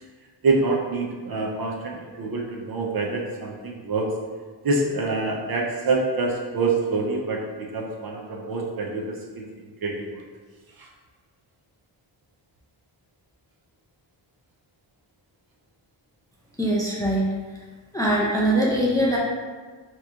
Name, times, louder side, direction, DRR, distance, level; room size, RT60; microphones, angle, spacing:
voice 1, 0.4-4.1 4.6-10.2 10.8-10.9, right 3 dB, 50° right, 0 dB, 0.5 m, -26 dB
voice 2, 16.6-17.3 17.5-17.6 17.9-19.2, right 1 dB, 10° left, -4 dB, 0.3 m, -22 dB
3.4 x 2.9 x 2.4 m, 1.4 s
wide cardioid pair, 140°, 47 cm